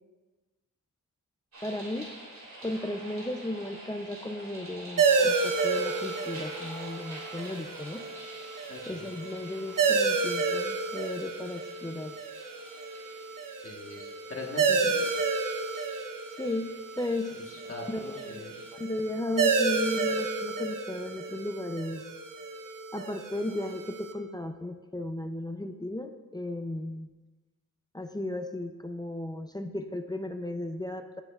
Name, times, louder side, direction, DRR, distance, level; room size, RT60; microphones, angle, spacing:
sound 1, 1.5-18.7, right 1 dB, 55° right, 3.1 m, -48 dB
voice 1, 1.6-2.1 2.6-8.0 8.9-12.2 16.4-17.3 17.9-18.5 18.7-22.0 22.9-27.1 27.9-31.2, left 1 dB, 15° left, 6 dB, 0.4 m, -35 dB
sound 2, 5.0-24.1, right 4 dB, 75° right, 0.8 m, -30 dB
voice 2, 8.7-9.1 13.6-15.1 17.7-18.5, left 2 dB, 45° left, -1 dB, 1.3 m, -41 dB
16.5 x 7.7 x 2.3 m, 1.2 s
wide cardioid pair, 170°, 33 cm